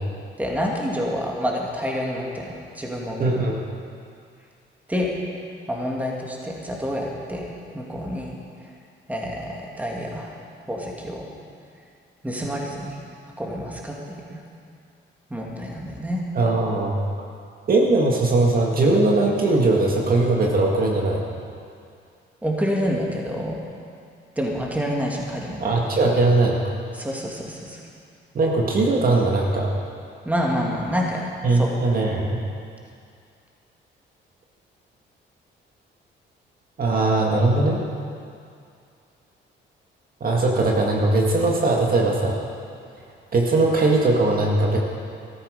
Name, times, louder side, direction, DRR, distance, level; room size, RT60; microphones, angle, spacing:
voice 1, 0.4-3.3 4.9-5.1 5.7-7.5 7.7-8.3 9.1-10.3 10.7-11.3 12.2-13.0 13.4-14.2 15.3-16.2 22.4-23.6 24.4-25.7 26.9-27.8 30.3-31.2 31.5-31.7, equal, 10° right, -2 dB, 2.6 m, -27 dB
voice 2, 3.2-3.6 16.3-17.0 17.7-21.2 25.6-26.6 28.3-29.7 31.4-32.4 36.8-37.8 40.2-42.5 43.3-44.8, right 2 dB, 45° right, -1 dB, 1.9 m, -20 dB
14.0 x 13.0 x 5.2 m, 2.4 s
cardioid pair, 90°, 20 cm